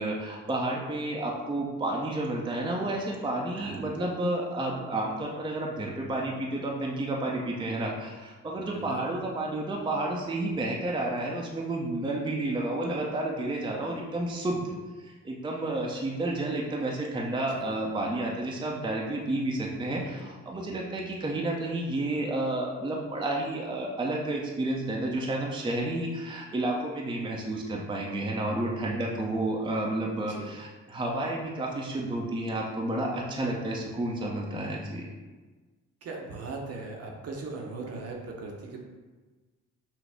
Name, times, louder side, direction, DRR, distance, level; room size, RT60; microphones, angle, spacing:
voice 1, 0.0-14.7 15.0-35.1, right 2 dB, 15° right, -1 dB, 0.6 m, -31 dB
voice 2, 3.5-3.9 8.7-9.0 17.5-17.8 30.2-30.5 36.0-38.8, right 3 dB, 55° right, 0 dB, 0.9 m, -39 dB
6.1 x 2.0 x 3.4 m, 1.3 s
cardioid pair, 90°, 30 cm